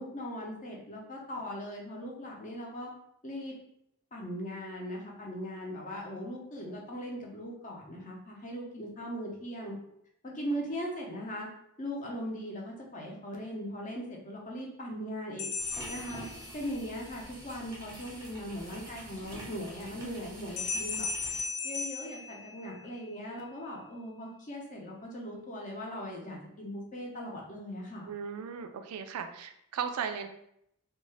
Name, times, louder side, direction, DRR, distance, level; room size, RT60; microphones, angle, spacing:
voice 1, 0.0-2.9 3.2-3.5 4.1-9.8 10.2-11.5 11.8-15.5 15.9-16.3 16.5-21.1 21.6-28.1, equal, 35° left, -2 dB, 0.6 m, -39 dB
sound 1, 15.4-16.9 20.6-23.1, left 4 dB, 85° left, 0.5 m, -36 dB
sound 2, 15.6-21.4, right 1 dB, 15° right, 0.7 m, -47 dB
voice 2, 28.0-30.3, right 6 dB, 80° right, 8 dB, 0.3 m, -36 dB
2.5 x 2.2 x 3.1 m, 0.75 s
head